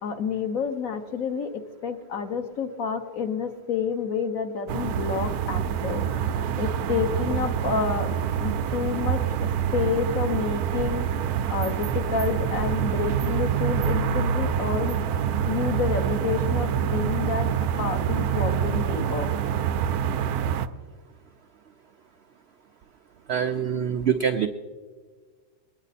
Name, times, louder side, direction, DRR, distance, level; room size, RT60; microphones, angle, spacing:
voice 1, 0.0-15.0 15.5-17.5 17.8-19.4, left 6 dB, 60° left, 7 dB, 1.3 m, -29 dB
sound 1, 4.7-20.7, right 8 dB, 70° right, 1.0 m, -26 dB
voice 2, 23.3-24.5, right 8 dB, 85° right, 6 dB, 0.5 m, -24 dB
23.0 x 9.7 x 4.2 m, 1.5 s
omnidirectional pair, 1.8 m